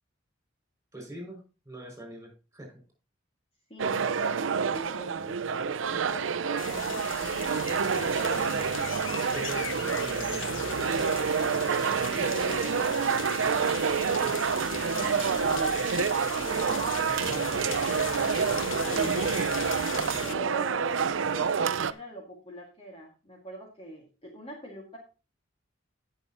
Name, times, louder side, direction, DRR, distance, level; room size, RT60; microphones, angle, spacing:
voice 1, 0.9-1.4 1.6-2.7 8.1-8.6 9.3-11.3 14.1-14.5 16.4-17.6 19.9-20.1, equal, 15° right, 2 dB, 6.1 m, -43 dB
voice 2, 3.7-7.3 7.9-8.4 12.1-13.5 15.4-15.8 18.4-19.4 20.2-25.0, right 1 dB, 30° left, 0 dB, 2.0 m, -42 dB
sound 1, 3.8-21.9, right 6 dB, 70° right, 0.5 m, -28 dB
sound 2, 6.6-20.3, left 6 dB, 75° left, 1.1 m, -38 dB
17.5 x 6.7 x 3.0 m, 0.32 s
head